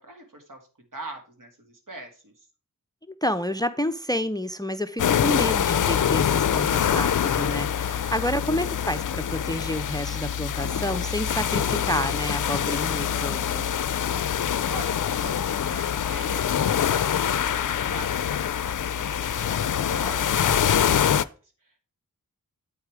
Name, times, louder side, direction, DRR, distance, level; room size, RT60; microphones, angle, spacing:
voice 1, 0.0-2.5 14.7-21.8, right 2 dB, 65° right, 3 dB, 2.2 m, -43 dB
voice 2, 3.2-13.7, left 1 dB, 10° left, 12 dB, 0.6 m, -29 dB
sound 1, 5.0-21.2, left 8 dB, 65° left, 0.5 m, -25 dB
8.4 x 4.8 x 4.7 m, 0.36 s
wide cardioid pair, 45°, 34 cm